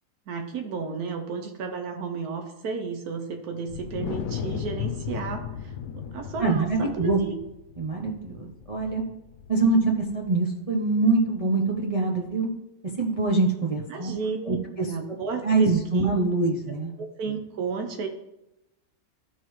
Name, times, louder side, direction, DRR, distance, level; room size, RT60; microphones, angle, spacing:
voice 1, 0.3-6.7 6.9-7.3 13.9-14.6 14.8-16.1 17.0-18.1, right 5 dB, 85° right, 4 dB, 1.3 m, -33 dB
Wind, 3.7-10.2, left 7 dB, 70° left, 1.0 m, -36 dB
voice 2, 6.4-7.2 7.8-9.0 9.5-12.5 13.0-14.1 14.5-14.9 15.4-16.9, right 3 dB, 30° right, -2 dB, 0.7 m, -24 dB
13.5 x 4.6 x 3.1 m, 0.90 s
omnidirectional pair, 1.5 m